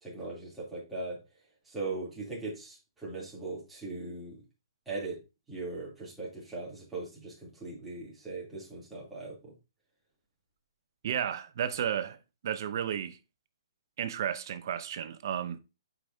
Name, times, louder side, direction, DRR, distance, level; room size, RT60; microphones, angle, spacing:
voice 1, 0.0-1.2 1.6-4.4 4.9-5.2 5.5-9.5, right 3 dB, 5° right, 2.7 m, -39 dB
voice 2, 11.0-12.2 12.4-13.2 14.0-15.6, right 9 dB, 50° right, 0.7 m, -32 dB
7.9 x 5.0 x 2.7 m
hypercardioid pair, 150°, 3 cm